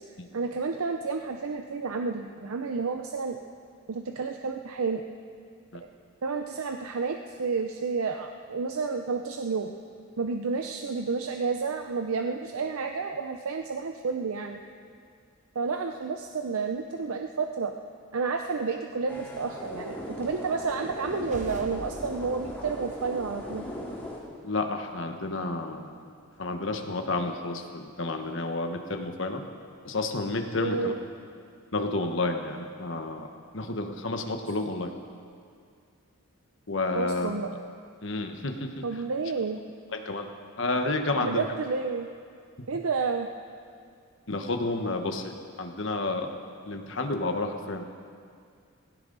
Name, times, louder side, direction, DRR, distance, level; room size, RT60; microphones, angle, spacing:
voice 1, 0.3-3.4 3.9-5.0 5.7-5.9 6.2-9.7 10.2-14.6 15.5-17.7 18.1-23.6 30.6-31.0 36.9-37.5 38.8-39.6 41.2-42.1 42.7-43.3, right 4 dB, 85° right, 5 dB, 0.6 m, -30 dB
sound 1, 19.1-24.2, equal, 10° left, 2.4 m, -39 dB
sound 2, 21.0-23.8, right 1 dB, 35° right, 1.0 m, -45 dB
voice 2, 24.4-26.1 26.4-29.4 29.8-30.9 31.7-33.3 33.5-34.9 36.7-37.4 38.0-38.8 39.9-40.3 40.6-41.5 42.6-42.7 44.3-46.3 46.6-47.8, left 2 dB, 60° left, 5 dB, 1.2 m, -30 dB
17.5 x 16.5 x 4.0 m, 2.2 s
head